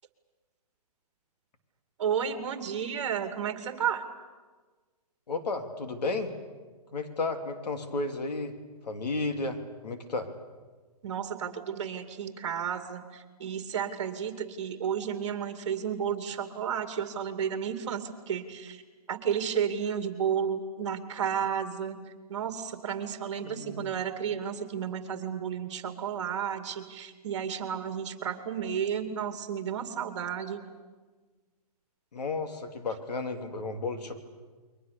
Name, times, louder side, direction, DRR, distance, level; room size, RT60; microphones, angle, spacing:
voice 1, 2.0-4.0 11.0-18.8 19.1-22.0 22.3-30.6, right 8 dB, 45° right, 8 dB, 2.4 m, -32 dB
voice 2, 5.3-6.3 6.9-8.6 8.8-10.3 23.4-24.0 32.1-34.1, left 3 dB, 85° left, 6 dB, 3.3 m, -33 dB
29.5 x 23.0 x 6.9 m, 1.4 s
hypercardioid pair, 170°, 20 cm